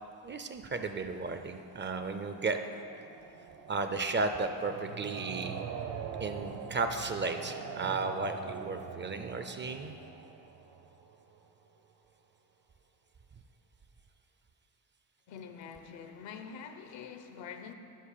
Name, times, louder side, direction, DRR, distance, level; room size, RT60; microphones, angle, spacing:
voice 1, 0.2-2.6 3.7-5.6 6.2-10.0, right 3 dB, 25° right, 7 dB, 0.5 m, -34 dB
sound 1, 0.7-11.6, right 6 dB, 65° right, 1.0 m, -44 dB
voice 2, 15.3-17.7, left 6 dB, 80° left, 7 dB, 0.9 m, -45 dB
10.0 x 5.5 x 6.6 m, 2.6 s
cardioid pair, 120°, 44 cm